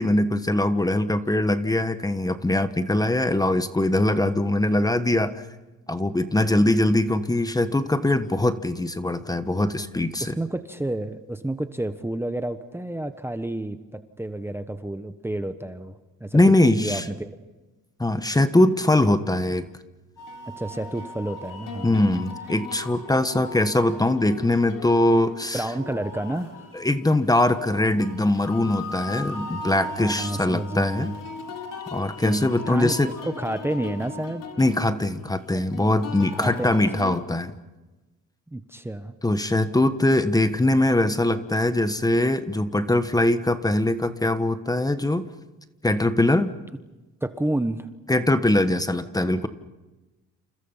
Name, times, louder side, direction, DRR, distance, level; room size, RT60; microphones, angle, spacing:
voice 1, 0.0-5.4 5.9-10.4 16.3-17.1 18.0-19.7 21.8-25.6 26.7-31.2 31.9-33.1 34.6-37.5 39.2-45.3 45.8-46.5 48.1-49.5, left 1 dB, 10° left, 11 dB, 1.3 m, -22 dB
voice 2, 10.2-16.4 16.8-17.3 20.6-22.0 25.5-26.7 30.0-31.1 32.2-34.4 35.5-35.6 36.3-36.9 38.5-39.1 47.2-47.9, right 1 dB, 5° right, 9 dB, 1.2 m, -30 dB
sound 1, 20.2-37.2, left 3 dB, 70° left, 4.0 m, -38 dB
29.0 x 28.5 x 5.7 m, 1.1 s
cardioid pair, 110°, 33 cm